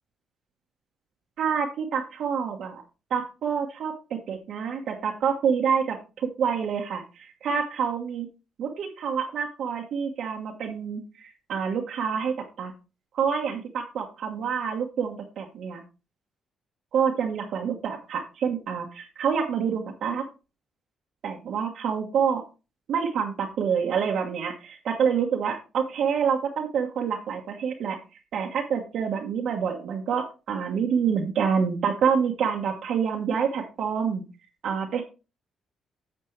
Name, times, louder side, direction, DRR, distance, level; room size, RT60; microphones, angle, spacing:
voice 1, 1.4-2.8 3.1-6.0 6.4-8.3 8.6-12.7 13.1-15.8 16.9-20.2 21.2-22.4 22.9-28.0 28.3-34.2 34.6-35.0, right 7 dB, 70° right, 0 dB, 1.3 m, -27 dB
10.5 x 6.7 x 3.3 m, 0.31 s
cardioid pair, 90°, 0 cm